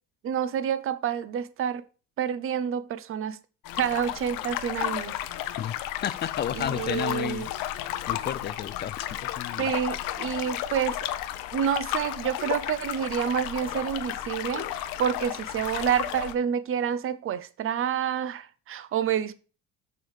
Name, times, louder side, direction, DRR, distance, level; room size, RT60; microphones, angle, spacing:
voice 1, 0.2-1.9 2.2-3.4 3.7-5.2 6.5-7.5 9.6-11.1 11.5-19.3, right 8 dB, 40° right, 0.7 m, -28 dB
sound 1, 3.6-16.3, left 13 dB, 80° left, 0.9 m, -33 dB
voice 2, 6.0-7.5 8.1-9.7, left 9 dB, 30° left, 0.4 m, -32 dB
6.8 x 6.6 x 4.9 m
cardioid pair, 130°, 34 cm